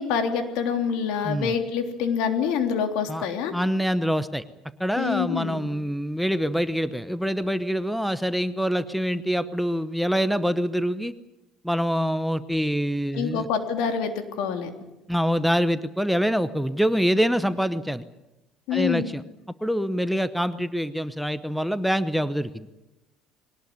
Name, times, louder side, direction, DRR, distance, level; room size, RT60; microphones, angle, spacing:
voice 1, 0.0-3.5 5.0-5.7 13.1-14.7 18.7-19.1, left 7 dB, 80° left, 6 dB, 3.4 m, -26 dB
voice 2, 3.5-4.4 4.8-11.1 11.6-13.5 15.1-18.0 18.7-19.2 19.6-22.7, equal, ahead, 13 dB, 0.9 m, -25 dB
22.0 x 18.5 x 9.6 m, 0.97 s
cardioid pair, 145°, 0 cm